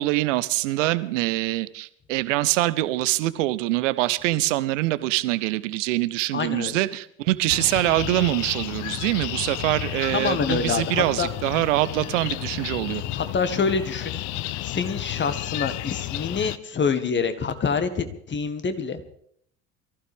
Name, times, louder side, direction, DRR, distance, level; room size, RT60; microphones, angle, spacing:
voice 1, 0.0-13.0, right 17 dB, 60° right, 0.9 m, -24 dB
voice 2, 6.3-6.8 10.1-11.3 13.1-19.0, left 5 dB, 25° left, 1.7 m, -26 dB
sound 1, 7.5-16.6, left 17 dB, 45° left, 0.7 m, -32 dB
24.0 x 15.0 x 3.6 m
figure-of-eight pair, 60°, 42 cm